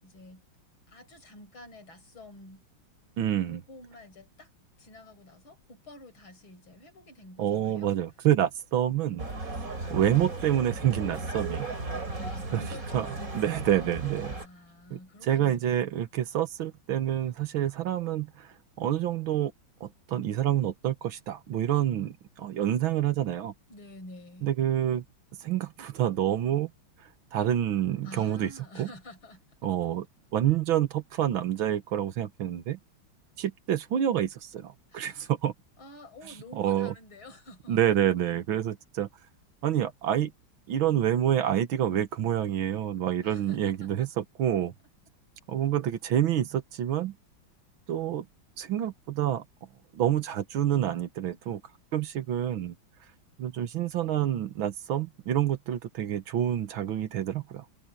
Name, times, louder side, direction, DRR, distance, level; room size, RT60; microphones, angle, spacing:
voice 1, 0.0-0.5 0.9-2.6 3.5-4.5 4.8-8.0 12.0-13.7 14.3-15.9 23.7-24.5 28.0-29.6 34.9-35.3 35.8-37.8 43.2-44.1, left 1 dB, 75° left, 6.5 m, -49 dB
voice 2, 3.2-3.6 7.4-9.5 9.9-11.7 12.5-12.6 12.9-13.1 13.3-14.3 14.9-19.5 19.8-23.5 24.4-25.0 25.4-26.7 27.3-28.5 28.8-28.9 29.6-30.1 30.3-32.8 33.4-35.5 36.5-36.9 37.7-39.1 39.6-40.3 40.7-44.7 45.5-47.2 47.9-48.3 48.6-49.4 49.9-51.6 51.9-52.8 53.4-57.7, right 11 dB, 75° right, 1.9 m, -28 dB
sound 1, 9.2-14.5, right 3 dB, 40° right, 4.4 m, -35 dB
omnidirectional pair, 2.2 m